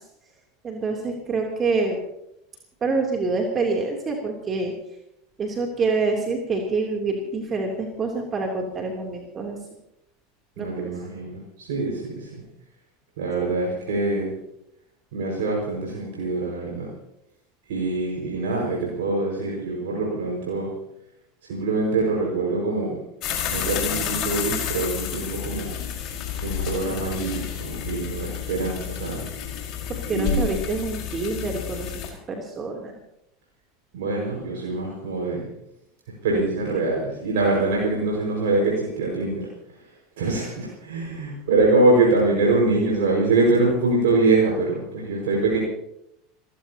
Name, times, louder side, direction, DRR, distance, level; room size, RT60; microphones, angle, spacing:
voice 1, 0.6-2.0 2.8-4.7 5.4-9.6 10.6-10.9 29.9-31.9 32.3-32.9, right 3 dB, 30° right, 1 dB, 3.1 m, -26 dB
voice 2, 10.6-12.4 13.2-14.3 15.1-16.9 17.7-20.7 21.5-23.0 23.5-25.7 26.4-29.2 30.1-30.5 33.9-35.5 36.2-39.5 40.2-45.6, right 3 dB, 60° right, -2 dB, 5.4 m, -24 dB
sound 1, 23.2-32.1, left 8 dB, 45° left, 5.0 m, -30 dB
29.5 x 15.0 x 2.9 m, 0.79 s
figure-of-eight pair, 80°, 0 cm